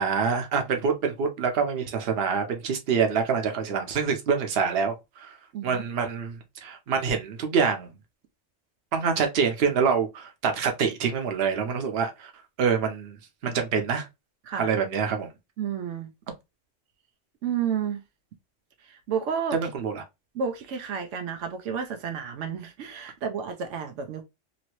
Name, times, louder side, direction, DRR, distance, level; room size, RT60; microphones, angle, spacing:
voice 1, 0.0-5.3 5.6-7.9 8.9-12.3 12.6-13.2 13.4-14.1 14.6-15.3 19.5-20.0, right 6 dB, 60° right, 1.0 m, -26 dB
voice 2, 5.5-5.8 14.5-14.7 15.6-16.1 17.4-18.0 18.9-19.6 20.3-24.2, right 7 dB, 85° right, 0.9 m, -31 dB
3.0 x 2.6 x 2.9 m
omnidirectional pair, 1.2 m